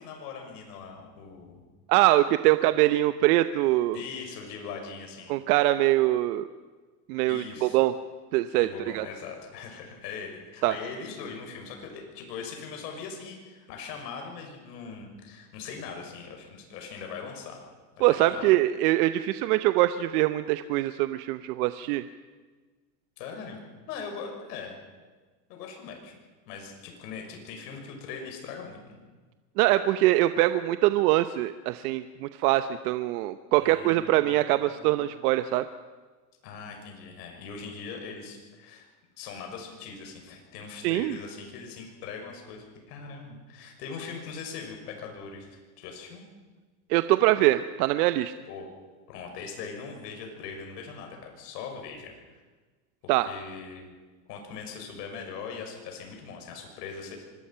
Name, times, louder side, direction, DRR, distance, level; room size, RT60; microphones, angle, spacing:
voice 1, 0.0-1.6 3.9-5.3 7.2-7.8 8.6-17.6 18.0-18.5 23.2-23.6 23.9-24.8 25.5-26.1 26.5-29.0 33.6-35.2 36.4-38.9 39.2-45.5 45.8-46.2 48.5-48.7 49.1-52.1 53.0-53.9 54.3-57.2, left 5 dB, 75° left, 3 dB, 6.2 m, -41 dB
voice 2, 1.9-4.0 5.3-6.5 7.1-7.9 8.3-8.7 8.9-9.1 10.6-10.7 18.0-22.0 29.6-35.6 40.8-41.2 46.9-48.3 53.1-53.3, right 16 dB, 65° right, 11 dB, 0.9 m, -23 dB
25.0 x 20.5 x 5.7 m, 1.4 s
supercardioid pair, 135°, 49 cm